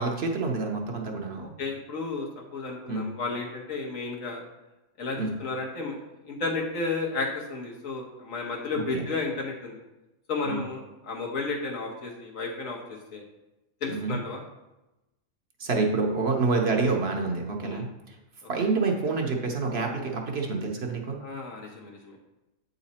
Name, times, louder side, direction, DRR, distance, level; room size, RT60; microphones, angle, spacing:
voice 1, 0.0-1.5 2.9-3.1 5.2-5.3 8.9-9.1 10.4-10.6 13.9-14.2 15.6-18.2 18.5-21.2, right 3 dB, 55° right, 1 dB, 1.0 m, -27 dB
voice 2, 1.6-4.4 5.0-6.0 6.2-9.7 10.3-12.8 13.1-13.2 13.8-14.4 16.8-16.9 17.6-17.8 21.2-22.1, left 3 dB, 75° left, -1 dB, 1.6 m, -32 dB
8.0 x 4.0 x 4.2 m, 0.99 s
omnidirectional pair, 1.4 m